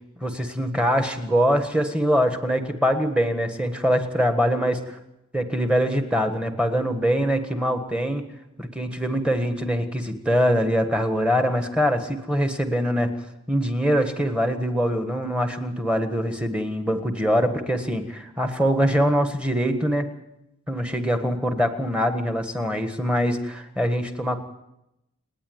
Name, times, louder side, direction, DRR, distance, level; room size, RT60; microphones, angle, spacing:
voice 1, 0.2-5.0 5.3-8.2 8.6-13.1 13.5-20.1 20.7-24.4, equal, 5° right, 7 dB, 1.5 m, -23 dB
28.5 x 9.7 x 9.4 m, 0.88 s
head